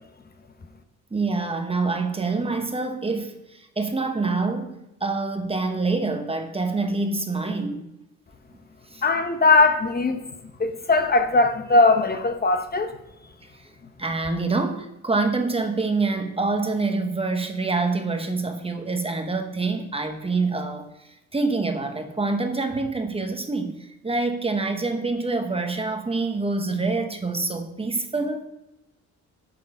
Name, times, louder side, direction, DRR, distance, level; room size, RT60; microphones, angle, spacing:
voice 1, 1.1-7.9 8.9-9.0 13.5-13.7 14.0-28.5, right 3 dB, 20° right, 1.0 m, -26 dB
voice 2, 9.0-10.2 10.6-12.9, left 3 dB, 30° left, 0.9 m, -19 dB
7.6 x 6.9 x 4.9 m
cardioid pair, 90°, 30 cm